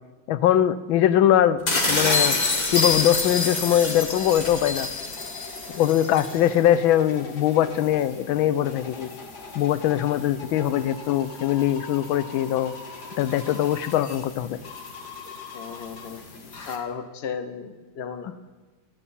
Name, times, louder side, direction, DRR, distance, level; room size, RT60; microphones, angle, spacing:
voice 1, 0.3-1.6 1.9-2.4 2.7-4.9 5.7-9.1 9.5-12.7 13.2-14.6 18.3-18.4, left 11 dB, 85° left, 14 dB, 1.5 m, -22 dB
sound 1, 1.7-6.4, left 3 dB, 25° left, 1.4 m, -25 dB
sound 2, 2.2-16.8, left 3 dB, 55° left, 2.0 m, -41 dB
voice 2, 15.5-16.2 16.7-18.3, left 6 dB, 40° left, 7 dB, 1.0 m, -34 dB
26.0 x 9.0 x 4.3 m, 1.3 s
omnidirectional pair, 2.2 m